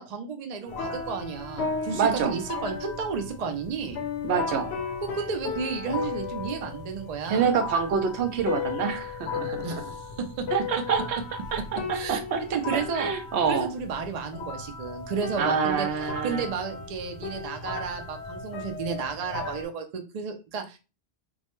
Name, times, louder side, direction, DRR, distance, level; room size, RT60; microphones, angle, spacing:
voice 1, 0.0-4.0 5.0-7.6 9.6-10.5 11.9-13.1 13.5-20.8, right 5 dB, 60° right, 5 dB, 0.4 m, -32 dB
sound 1, 0.7-19.6, left 4 dB, 75° left, 0.8 m, -35 dB
voice 2, 1.9-2.3 4.2-4.7 7.3-9.8 10.5-11.2 11.5-11.6 11.9-12.4 12.7-13.7 15.4-16.4, right 6 dB, 80° right, 6 dB, 0.9 m, -26 dB
2.3 x 2.1 x 2.9 m, 0.30 s
omnidirectional pair, 1.1 m